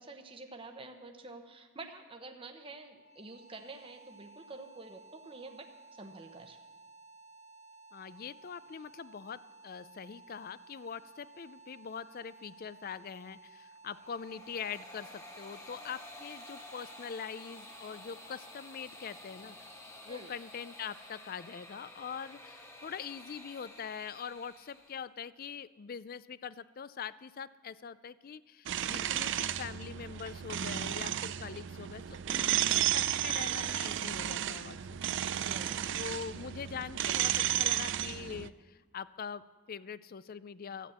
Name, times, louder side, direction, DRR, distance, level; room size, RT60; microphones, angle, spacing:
voice 1, 0.0-6.6 20.1-20.3 35.4-35.8 36.3-36.5, right 3 dB, 25° right, 5 dB, 0.9 m, -48 dB
sound 1, 2.9-19.8, right 3 dB, 75° left, 3.3 m, -57 dB
voice 2, 7.9-19.7 20.1-35.2 35.9-40.9, left 7 dB, 40° left, 17 dB, 0.4 m, -43 dB
sound 2, 13.9-25.0, left 1 dB, 15° left, 1.5 m, -51 dB
sound 3, 28.7-38.5, right 11 dB, 55° right, 0.4 m, -33 dB
13.0 x 9.2 x 8.5 m, 1.3 s
head